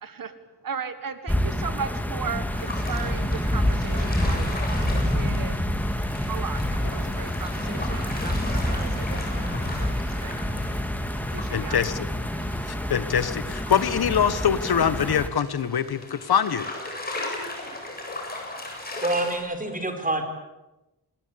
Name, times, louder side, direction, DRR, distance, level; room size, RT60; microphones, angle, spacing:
voice 1, 0.0-0.3 0.6-4.5 4.9-5.5 6.3-9.1 9.3-10.4 11.3-11.8, right 6 dB, 60° right, 11 dB, 1.8 m, -36 dB
sound 1, 1.3-15.3, equal, 5° left, 1.9 m, -27 dB
sound 2, 2.5-19.4, left 2 dB, 25° left, 7.7 m, -38 dB
voice 2, 11.5-12.1 12.7-16.7, left 8 dB, 70° left, 13 dB, 1.5 m, -24 dB
voice 3, 19.0-20.2, right 2 dB, 20° right, 5 dB, 4.6 m, -26 dB
28.0 x 20.5 x 8.7 m, 0.99 s
wide cardioid pair, 155°, 39 cm